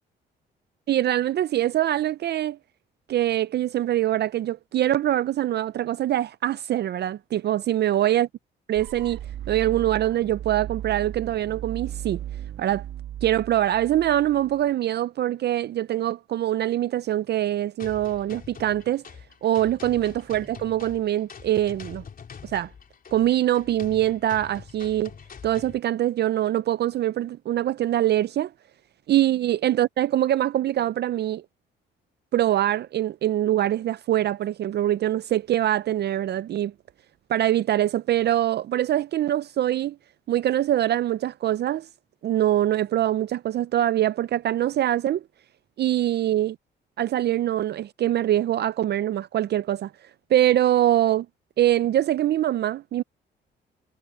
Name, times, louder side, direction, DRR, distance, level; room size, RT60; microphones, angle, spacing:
voice 1, 0.9-2.6 3.1-8.3 8.7-9.2 9.5-12.2 12.6-12.8 13.2-19.0 19.4-22.0 22.4-22.7 23.1-25.1 25.4-28.5 29.1-31.4 32.3-36.7 37.3-40.0 40.3-41.9 42.2-45.2 45.8-46.6 47.0-49.9 50.3-51.3 51.6-53.0, right 12 dB, 55° right, 0.5 m, -23 dB
sound 1, 8.8-14.7, right 11 dB, 75° right, 1.3 m, -36 dB
sound 2, 17.8-25.8, left 6 dB, 45° left, 4.3 m, -44 dB
cardioid pair, 90°, 20 cm